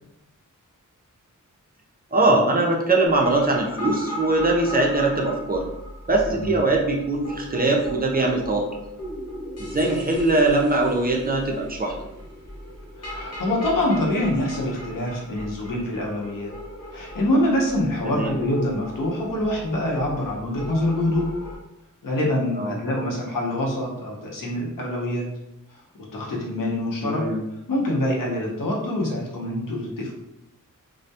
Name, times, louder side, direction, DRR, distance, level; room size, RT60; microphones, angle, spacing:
voice 1, 2.1-5.6 6.1-8.7 9.6-11.9 18.0-18.3 22.6-22.8 27.0-27.4, right 2 dB, 30° right, 0 dB, 0.4 m, -21 dB
sound 1, 3.1-21.5, equal, 50° left, 0.7 m, -38 dB
voice 2, 6.3-6.6 13.0-16.5 16.9-21.3 22.0-25.3 25.7-25.8 26.1-27.2 27.7-30.1, left 1 dB, 85° left, -3 dB, 0.7 m, -25 dB
2.2 x 2.1 x 2.7 m, 0.87 s
wide cardioid pair, 90°, 32 cm